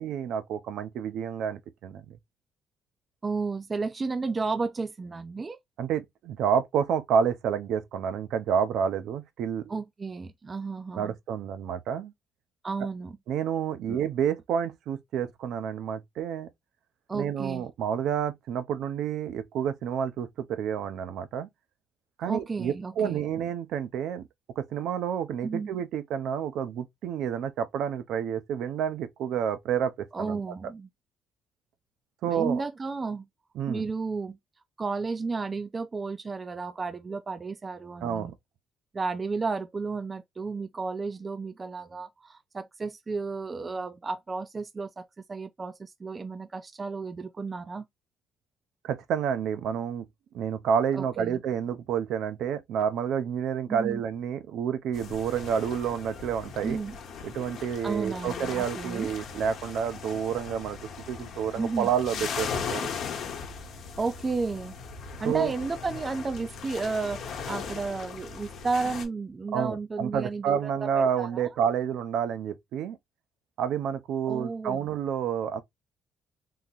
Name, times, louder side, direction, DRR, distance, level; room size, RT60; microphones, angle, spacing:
voice 1, 0.0-2.2 5.8-9.7 11.0-12.1 13.3-16.5 17.1-21.5 22.2-24.2 24.6-30.4 32.2-32.6 33.6-33.9 38.0-38.3 48.8-50.1 50.3-56.8 57.2-60.8 61.1-62.9 65.2-65.5 69.5-73.0 73.6-75.6, right 8 dB, 70° right, 0.6 m, -29 dB
voice 2, 3.2-5.6 9.7-11.1 12.6-13.2 13.9-14.0 17.1-17.7 22.3-23.2 25.4-25.7 30.1-30.9 32.2-33.3 33.7-34.4 34.8-38.3 38.9-47.9 50.9-51.4 53.7-54.0 56.6-57.0 57.8-59.1 61.6-61.9 64.0-64.8 65.2-71.5 74.3-74.9, right 4 dB, 20° right, 0.3 m, -33 dB
sound 1, 54.9-69.0, left 6 dB, 60° left, 0.9 m, -38 dB
3.8 x 2.8 x 2.4 m
cardioid pair, 160°, 0 cm